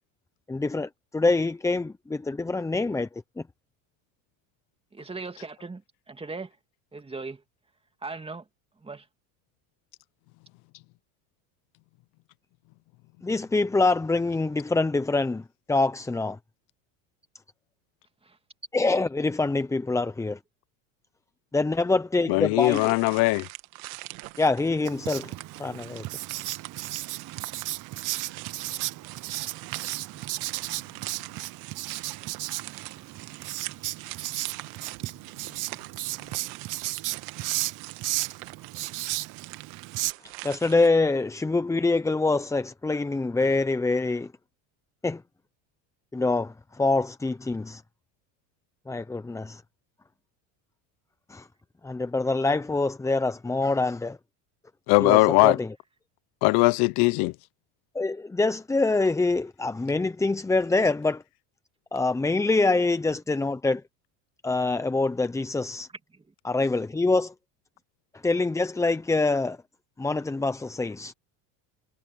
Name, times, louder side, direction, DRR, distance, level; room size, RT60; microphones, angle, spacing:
voice 1, 0.5-3.1 13.2-15.4 15.7-16.4 18.7-20.4 21.5-22.9 24.4-25.3 25.6-26.0 40.4-44.3 45.0-45.2 46.1-47.8 48.9-49.6 51.3-51.4 51.8-54.2 55.0-55.7 57.9-61.2 61.9-63.8 64.4-65.9 66.4-67.3 68.2-69.6 70.0-71.1, left 3 dB, 5° left, 0.6 m, -25 dB
voice 2, 4.9-5.8 6.1-6.6 6.9-7.4 8.0-8.4 8.8-9.1 18.2-18.4 66.1-66.2, right 3 dB, 15° right, 2.3 m, -38 dB
voice 3, 22.3-23.5 54.9-55.6 56.4-57.3, left 25 dB, 65° left, 0.9 m, -20 dB
sound 1, 22.6-40.9, right 23 dB, 75° right, 1.8 m, -43 dB
Writing, 24.9-40.1, right 17 dB, 50° right, 0.9 m, -34 dB
supercardioid pair, 105°, 42 cm